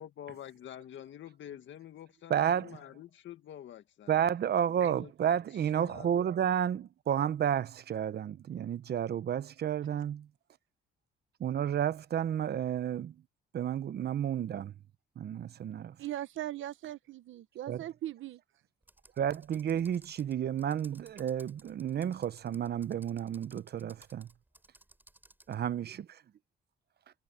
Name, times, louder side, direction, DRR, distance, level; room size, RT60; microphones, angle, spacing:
voice 1, 0.0-4.4 4.7-5.1 5.5-6.3, left 10 dB, 70° left, 1.9 m, -48 dB
voice 2, 2.3-2.8 4.1-10.3 11.4-13.1 13.5-14.7 15.2-15.9 17.7-17.8 19.2-24.3 25.5-26.0, right 9 dB, 55° right, 0.9 m, -31 dB
voice 3, 16.0-18.4, right 13 dB, 75° right, 1.2 m, -39 dB
Computer keyboard, 18.8-25.6, right 1 dB, 10° right, 5.2 m, -60 dB
cardioid pair, 90°, 20 cm